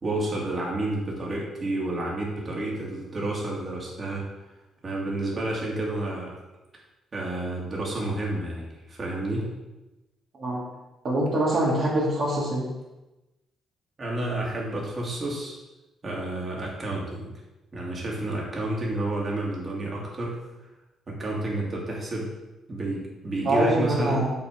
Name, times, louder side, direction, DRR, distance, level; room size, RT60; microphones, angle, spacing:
voice 1, 0.0-4.2 4.8-6.3 7.1-9.5 14.0-15.6 16.0-17.3 17.7-20.4 21.1-22.3 22.7-24.2, right 2 dB, 35° right, -3 dB, 2.6 m, -30 dB
voice 2, 11.0-12.7 23.4-24.3, right 1 dB, 50° right, -6 dB, 2.2 m, -24 dB
7.1 x 4.4 x 6.8 m, 1.0 s
cardioid pair, 90°, 0 cm